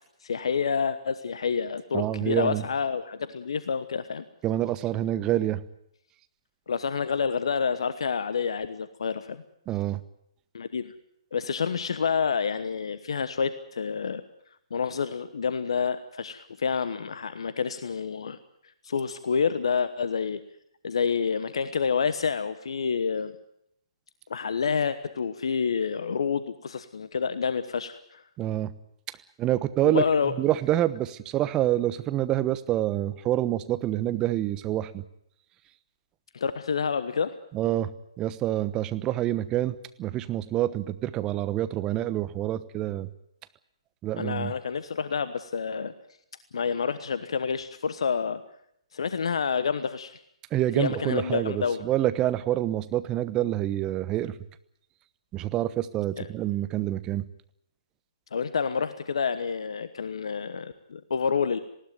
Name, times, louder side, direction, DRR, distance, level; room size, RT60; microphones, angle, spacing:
voice 1, 0.2-4.2 6.7-9.4 10.5-10.9 11.3-14.2 14.7-18.4 18.8-20.4 20.8-23.3 24.3-28.2 29.8-30.3 36.3-37.3 44.2-45.9 46.5-48.4 48.9-50.1 50.8-51.8 56.2-56.3 58.3-61.6, left 6 dB, 65° left, 13 dB, 1.2 m, -28 dB
voice 2, 1.9-2.6 4.4-5.6 9.7-10.0 28.4-28.7 29.4-30.0 30.4-35.0 37.5-37.9 38.2-43.1 44.0-44.5 50.5-54.3 55.3-57.2, right 13 dB, 20° right, 14 dB, 1.1 m, -27 dB
20.0 x 17.5 x 9.3 m, 0.74 s
figure-of-eight pair, 130°, 3 cm